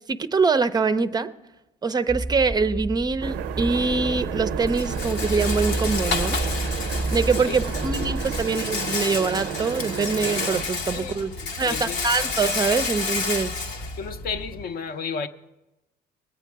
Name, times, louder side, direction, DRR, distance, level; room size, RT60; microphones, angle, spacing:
voice 1, 0.1-1.3 1.8-6.4 7.1-11.3 11.6-13.6, right 4 dB, 25° right, 0.4 m, -24 dB
sound 1, 2.1-8.5, right 1 dB, ahead, 0.8 m, -30 dB
sound 2, 3.2-10.6, right 11 dB, 80° right, 0.4 m, -32 dB
Rattle, 3.6-14.6, left 4 dB, 85° left, 1.2 m, -31 dB
voice 2, 10.9-12.0 14.0-15.3, left 5 dB, 60° left, 0.7 m, -33 dB
20.0 x 8.2 x 4.6 m
cardioid pair, 110°, 17 cm